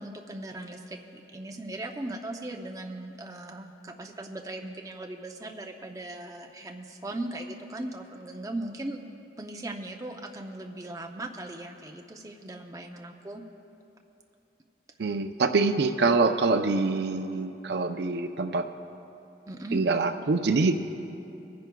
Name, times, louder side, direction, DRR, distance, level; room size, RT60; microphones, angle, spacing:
voice 1, 0.0-9.0 9.4-13.4 19.5-19.8, right 1 dB, 20° right, 2 dB, 0.5 m, -38 dB
voice 2, 15.0-18.7 19.7-20.7, right 3 dB, 65° right, 8 dB, 0.5 m, -25 dB
23.0 x 10.5 x 2.3 m, 2.8 s
head